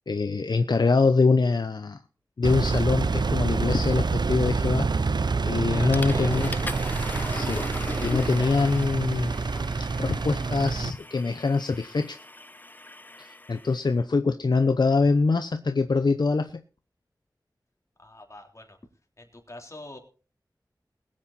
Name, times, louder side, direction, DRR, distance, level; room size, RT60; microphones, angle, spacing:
voice 1, 0.1-2.0 2.4-6.5 7.3-7.6 8.0-9.3 10.0-12.2 13.2-16.6, left 4 dB, 75° left, 8 dB, 0.8 m, -24 dB
Engine, 2.4-10.9, right 4 dB, 70° right, 0.7 m, -27 dB
Water / Toilet flush, 5.3-5.5 5.9-13.8, left 2 dB, 25° left, 0.7 m, -39 dB
voice 2, 5.7-6.6 18.0-18.8 19.2-20.0, left 2 dB, 40° left, 2 dB, 3.5 m, -44 dB
20.5 x 8.8 x 4.2 m, 0.36 s
wide cardioid pair, 70°, 8 cm